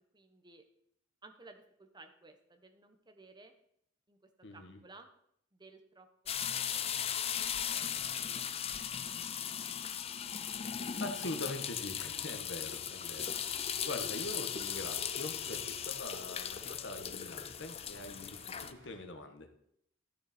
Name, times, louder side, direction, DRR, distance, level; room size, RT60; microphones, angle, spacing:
voice 1, 0.1-0.6 1.2-3.5 4.1-5.1 5.5-6.1 6.6-7.2 7.7-8.7 9.2-9.3 9.6-9.7, right 3 dB, 20° right, 7 dB, 1.0 m, -58 dB
voice 2, 4.4-4.8 11.0-19.5, left 2 dB, 65° left, 6 dB, 1.4 m, -43 dB
sound 1, 6.3-18.7, left 8 dB, 30° left, 0.5 m, -38 dB
sound 2, 10.9-19.0, equal, 70° right, 3.5 m, -60 dB
13.5 x 6.7 x 4.3 m, 0.72 s
head